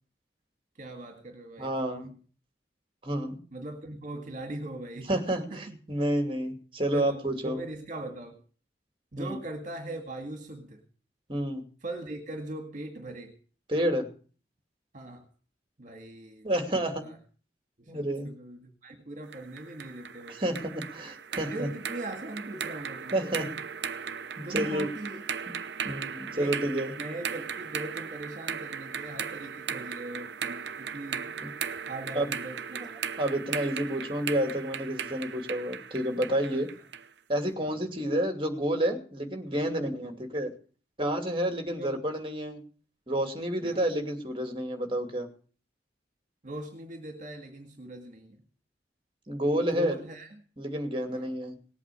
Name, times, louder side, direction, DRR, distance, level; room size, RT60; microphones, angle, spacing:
voice 1, 0.8-2.2 3.5-5.3 5.5-5.8 6.9-8.4 9.1-10.8 11.8-13.4 14.9-15.3 15.8-16.7 17.0-17.2 17.8-20.6 21.5-23.4 24.5-25.3 25.9-26.0 26.3-31.3 31.9-32.9 36.5-36.6 37.6-37.8 40.0-40.2 41.8-42.0 43.6-43.8 46.4-48.4 49.5-50.3 51.1-51.3, right 1 dB, 45° right, 4 dB, 2.0 m, -40 dB
voice 2, 1.6-2.1 3.0-3.4 5.1-7.6 9.2-9.4 11.3-11.6 13.7-14.1 16.4-17.0 17.9-18.3 20.3-21.7 23.1-23.4 24.4-24.9 25.8-26.9 31.4-31.5 32.1-32.3 33.2-36.7 37.3-40.5 41.0-42.6 43.1-45.3 49.3-49.9 50.6-51.6, right 1 dB, 30° right, 5 dB, 2.5 m, -29 dB
sound 1, 19.3-37.1, right 7 dB, 75° right, 0.8 m, -37 dB
18.5 x 8.4 x 7.0 m, 0.41 s
head